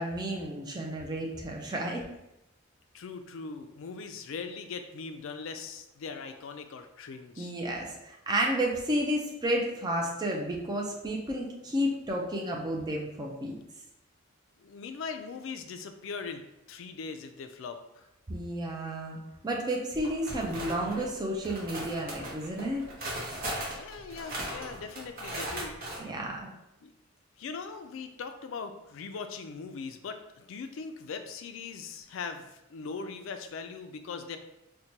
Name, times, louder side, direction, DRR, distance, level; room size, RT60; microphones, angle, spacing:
voice 1, 0.0-2.0 7.4-13.6 18.3-19.2 19.4-22.8 26.0-26.5, right 1 dB, 20° right, -1 dB, 0.4 m, -31 dB
voice 2, 2.9-7.6 14.6-16.4 16.7-18.1 23.8-25.8 26.8-26.9 27.4-34.4, left 5 dB, 65° left, 7 dB, 0.3 m, -40 dB
sound 1, 20.0-21.1 21.4-26.0, right 1 dB, 45° right, 0.8 m, -37 dB
4.4 x 2.2 x 2.8 m, 0.88 s
head